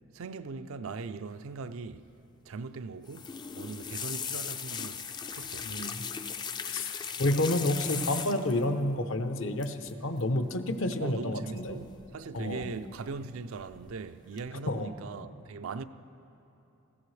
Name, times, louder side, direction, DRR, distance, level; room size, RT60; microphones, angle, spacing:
voice 1, 0.1-2.1 2.5-5.1 5.3-5.7 11.0-15.8, right 4 dB, 85° right, 0.5 m, -40 dB
sound 1, 3.1-8.6 9.6-9.9 10.2-10.5 11.7-12.3 12.6-13.2 13.6-14.0 14.4-14.5, left 7 dB, 20° left, 0.3 m, -38 dB
voice 2, 5.6-6.0 6.7-11.8 12.3-12.7 14.7-14.9, left 1 dB, 70° left, 0.8 m, -30 dB
19.5 x 15.5 x 3.3 m
head